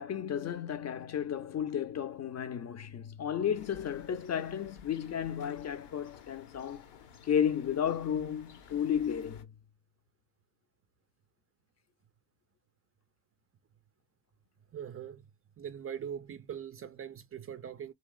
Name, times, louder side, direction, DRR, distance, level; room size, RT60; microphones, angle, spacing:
voice 1, 0.0-6.9 7.2-9.5, left 8 dB, 35° left, 0.5 m, -33 dB
sound 1, 3.5-9.4, left 7 dB, 65° left, 1.0 m, -54 dB
voice 2, 14.7-15.2 15.6-17.9, right 8 dB, 30° right, 0.4 m, -41 dB
2.9 x 2.9 x 2.3 m
supercardioid pair, 65°, 45 cm